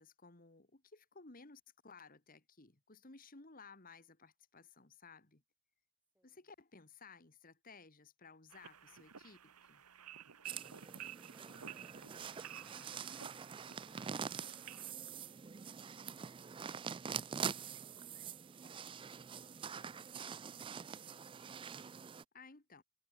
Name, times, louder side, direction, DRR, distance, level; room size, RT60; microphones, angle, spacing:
voice 1, 0.0-5.4 6.2-9.8 22.3-22.8, left 4 dB, 40° left, 1.8 m, -58 dB
voice 2, 6.1-6.5, right 1 dB, 5° right, 5.4 m, -80 dB
sound 1, 8.5-14.9, right 9 dB, 90° right, 1.4 m, -53 dB
sound 2, 10.4-22.2, right 7 dB, 20° right, 0.3 m, -45 dB
head